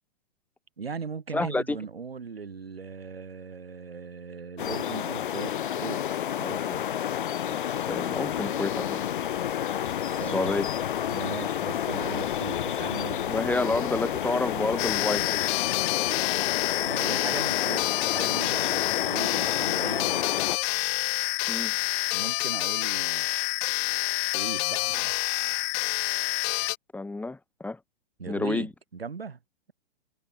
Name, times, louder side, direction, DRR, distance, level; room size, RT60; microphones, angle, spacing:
voice 1, 0.8-6.0 6.4-6.9 10.1-10.5 11.1-13.3 16.8-20.2 22.1-23.6 24.3-25.4 28.2-29.4, right 5 dB, 70° right, 7.4 m, -38 dB
voice 2, 1.3-1.8 7.5-9.0 10.3-10.7 13.3-15.4 21.5-21.7 26.9-27.8 28.3-28.7, left 2 dB, 5° left, 2.8 m, -29 dB
sound 1, 4.6-20.6, left 10 dB, 55° left, 5.8 m, -30 dB
sound 2, 14.8-26.8, left 40 dB or more, 25° left, 0.8 m, -28 dB
figure-of-eight pair, 115°, 31 cm